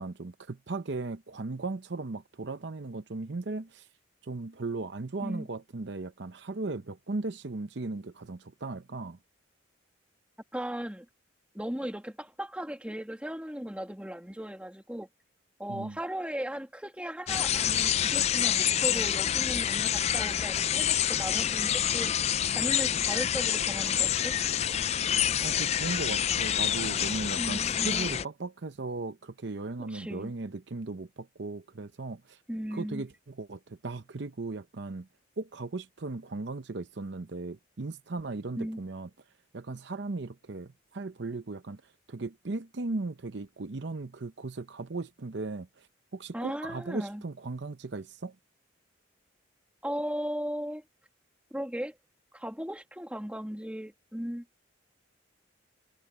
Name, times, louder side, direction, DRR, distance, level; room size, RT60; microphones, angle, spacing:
voice 1, 0.0-3.9 4.2-9.2 15.7-16.0 25.4-32.4 32.7-35.1 35.4-39.1 39.5-45.9 46.1-48.3, right 3 dB, 60° right, 0.7 m, -37 dB
voice 2, 10.5-11.1 11.5-15.1 15.6-24.3 27.4-28.1 29.9-30.3 32.5-33.0 38.6-38.8 46.3-47.2 49.8-50.8 51.5-52.0 52.3-54.4, equal, 5° right, 2.0 m, -37 dB
sound 1, 17.3-28.2, left 10 dB, 30° left, 0.3 m, -27 dB
head